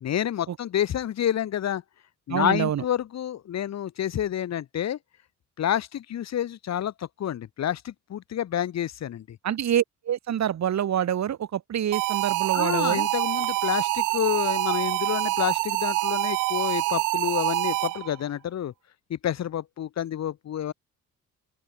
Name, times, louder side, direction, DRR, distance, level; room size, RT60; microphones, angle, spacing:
voice 1, 0.0-1.8 2.3-5.0 5.6-9.4 12.5-18.7 19.1-20.7, left 10 dB, 60° left, 1.7 m, -29 dB
voice 2, 2.3-2.8 9.4-13.1, right 10 dB, 65° right, 4.6 m, -26 dB
sound 1, 11.9-18.2, right 20 dB, 90° right, 0.5 m, -26 dB
open air
cardioid pair, 90°, 30 cm